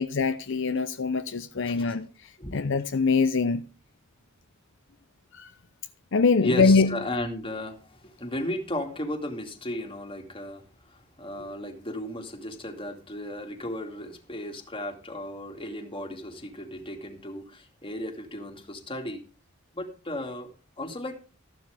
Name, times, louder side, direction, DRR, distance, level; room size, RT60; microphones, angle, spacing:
voice 1, 0.0-2.1 2.5-3.6 5.3-5.5 6.1-6.9, left 4 dB, 65° left, 0.7 m, -23 dB
voice 2, 1.6-2.0 2.4-2.6 6.4-19.2 19.7-21.2, left 1 dB, 25° left, 2.5 m, -35 dB
14.5 x 12.0 x 3.4 m
head